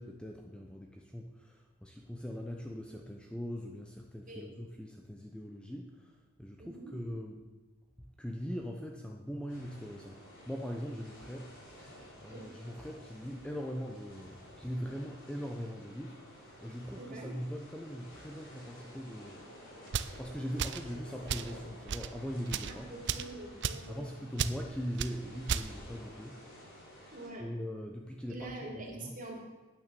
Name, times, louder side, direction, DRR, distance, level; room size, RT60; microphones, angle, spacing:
voice 1, 0.0-7.5 8.2-11.8 12.2-19.5 19.8-22.9 23.9-26.5 27.4-29.2, equal, 5° left, 1 dB, 0.8 m, -41 dB
voice 2, 6.6-6.9 12.3-12.4 17.0-17.3 22.7-24.2 27.1-27.4 28.3-29.4, right 2 dB, 40° right, -1 dB, 3.0 m, -45 dB
sound 1, 9.5-27.3, equal, 60° left, 4.4 m, -53 dB
sound 2, 19.9-20.2 20.6-20.9 21.3-21.5 21.9-22.1 22.5-22.7 23.1-23.3 23.6-23.9 24.4-24.6 25.0-25.1 25.5-25.7, right 7 dB, 55° right, 0.5 m, -33 dB
9.5 x 9.0 x 6.9 m, 1.2 s
head